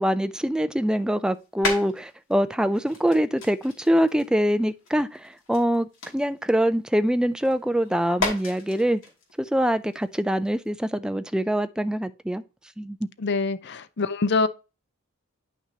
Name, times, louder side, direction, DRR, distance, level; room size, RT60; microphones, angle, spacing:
voice 1, 0.0-5.2 5.5-5.9 6.1-9.0 9.5-12.4 12.8-13.0, equal, 5° right, 0.4 m, -24 dB
sound 1, 1.3-2.3 2.7-6.8 7.1-10.9, left 3 dB, 80° left, 2.5 m, -35 dB
voice 2, 13.2-14.5, left 4 dB, 55° left, 0.6 m, -24 dB
9.6 x 6.0 x 2.8 m
head